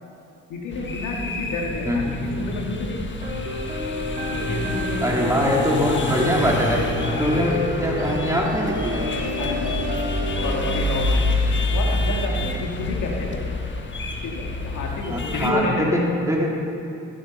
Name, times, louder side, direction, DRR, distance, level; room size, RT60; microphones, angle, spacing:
voice 1, 0.5-3.0 4.3-5.2 5.9-6.1 7.0-7.4 9.4-9.8 10.4-11.1 11.7-13.4 14.2-16.1, left 2 dB, 75° left, 0 dB, 2.2 m, -29 dB
sound 1, 0.7-15.5, left 2 dB, 40° left, 1.5 m, -27 dB
voice 2, 1.8-2.2 5.0-6.9 7.2-9.1 15.1-16.7, equal, 10° right, -3 dB, 3.1 m, -23 dB
sound 2, 3.2-10.8, left 1 dB, 25° right, 4.0 m, -30 dB
15.0 x 11.5 x 5.5 m, 2.6 s
cardioid pair, 90°, 30 cm